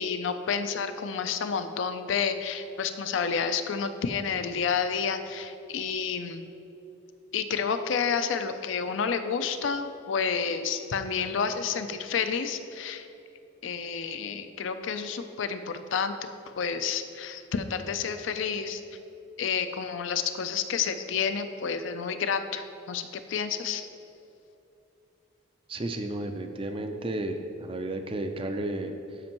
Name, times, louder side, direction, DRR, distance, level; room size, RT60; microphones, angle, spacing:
voice 1, 0.0-6.5 7.3-13.1 13.6-16.1 16.6-18.8 19.4-23.9, left 6 dB, 65° left, 9 dB, 0.4 m, -30 dB
voice 2, 25.7-29.2, right 1 dB, 25° right, 6 dB, 0.4 m, -33 dB
12.5 x 5.2 x 3.0 m, 2.8 s
head